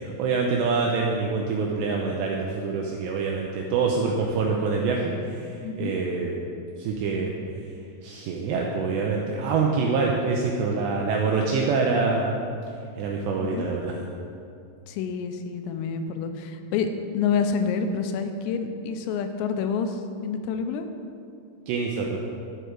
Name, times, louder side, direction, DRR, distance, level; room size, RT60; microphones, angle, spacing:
voice 1, 0.0-6.4 6.8-7.3 8.0-12.3 13.0-13.9 21.7-22.2, right 4 dB, 85° right, 0 dB, 2.5 m, -25 dB
voice 2, 5.6-6.0 13.4-13.7 14.9-20.9, left 6 dB, 90° left, 7 dB, 3.4 m, -28 dB
12.0 x 8.0 x 4.6 m, 2.5 s
omnidirectional pair, 5.8 m